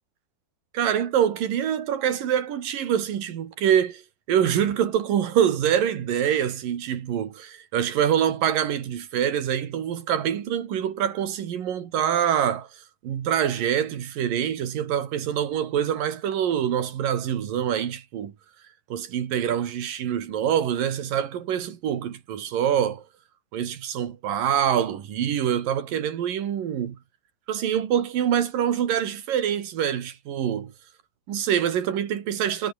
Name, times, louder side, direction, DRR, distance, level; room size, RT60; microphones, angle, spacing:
voice 1, 0.7-4.0 4.3-12.7 13.0-18.3 18.9-23.0 23.5-27.0 27.5-30.7 31.3-32.7, right 9 dB, 70° right, 3.8 m, -25 dB
omnidirectional pair, 4.2 m